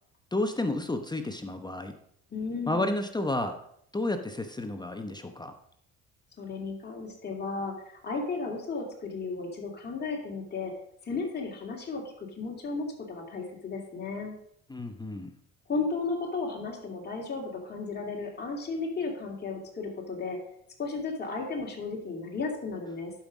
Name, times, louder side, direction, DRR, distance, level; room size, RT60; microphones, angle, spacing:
voice 1, 0.3-2.0 2.7-3.6 3.9-5.5 14.7-15.3, left 2 dB, 15° left, 7 dB, 0.8 m, -31 dB
voice 2, 2.3-2.9 6.4-10.7 11.0-12.0 12.4-14.3 15.7-20.4 20.8-23.1, left 4 dB, 35° left, -2 dB, 2.6 m, -34 dB
11.5 x 5.4 x 5.0 m, 0.70 s
supercardioid pair, 80°, 30 cm